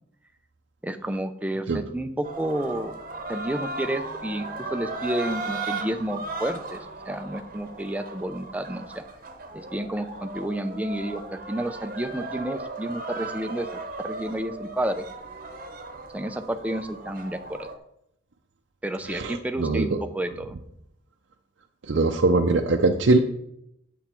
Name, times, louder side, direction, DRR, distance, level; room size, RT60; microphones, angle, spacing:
voice 1, 0.8-2.9 3.3-9.0 9.5-13.7 14.0-15.1 16.1-17.7 18.8-20.6, right 1 dB, 10° right, 8 dB, 0.5 m, -30 dB
sound 1, 2.2-17.8, right 3 dB, 45° right, 1.0 m, -36 dB
voice 2, 19.1-19.9 21.9-23.2, right 3 dB, 75° right, 2 dB, 0.6 m, -21 dB
9.0 x 7.1 x 4.4 m, 0.78 s
head